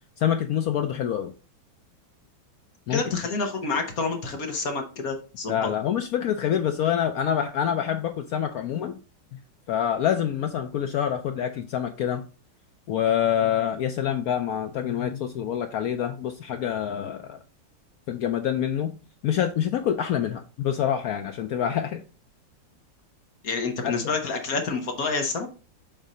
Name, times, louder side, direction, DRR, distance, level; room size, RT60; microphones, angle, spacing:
voice 1, 0.2-1.3 2.9-3.0 5.5-8.9 9.7-12.2 12.9-17.4 18.1-18.9 19.2-22.0 23.8-23.9, left 9 dB, 80° left, 6 dB, 0.8 m, -26 dB
voice 2, 2.9-5.5 23.4-25.5, left 4 dB, 55° left, 4 dB, 1.3 m, -28 dB
7.4 x 2.7 x 5.0 m, 0.34 s
omnidirectional pair, 2.1 m